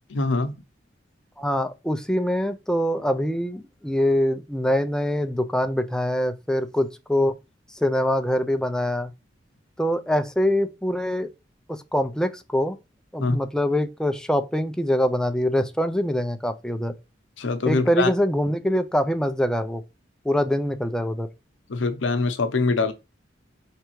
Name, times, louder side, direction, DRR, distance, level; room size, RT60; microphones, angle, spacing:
voice 1, 0.1-0.5 13.2-13.4 17.4-18.1 21.7-22.9, left 3 dB, 90° left, 0.6 m, -23 dB
voice 2, 1.4-7.3 7.8-9.1 9.8-11.3 11.7-12.8 13.1-16.9 17.7-19.8 20.2-21.3, equal, 5° left, 0.3 m, -24 dB
4.8 x 3.3 x 3.0 m
head